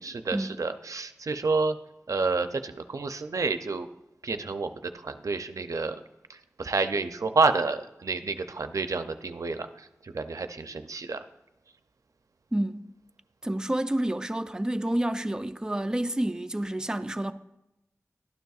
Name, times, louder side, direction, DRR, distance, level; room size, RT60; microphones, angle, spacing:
voice 1, 0.0-1.8 2.1-3.9 4.2-6.0 6.3-11.2, right 4 dB, 85° right, 0.5 m, -29 dB
voice 2, 12.5-12.9 13.4-17.3, right 1 dB, 15° right, 0.4 m, -29 dB
12.0 x 9.3 x 2.4 m
wide cardioid pair, 55°, 6 cm